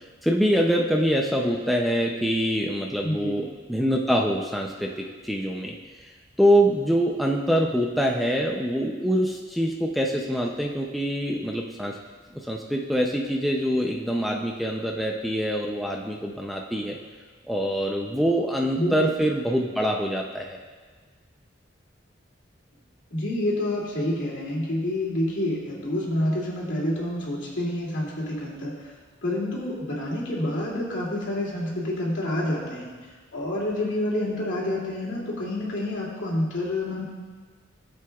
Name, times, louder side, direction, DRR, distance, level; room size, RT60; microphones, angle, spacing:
voice 1, 0.2-5.8 6.4-12.0 12.3-17.0 17.5-20.6, equal, ahead, 0 dB, 0.4 m, -24 dB
voice 2, 3.0-3.4 18.8-19.1 23.1-28.9 29.2-32.9 33.3-37.0, left 1 dB, 75° left, -5 dB, 2.5 m, -28 dB
17.0 x 7.7 x 2.3 m, 1.5 s
head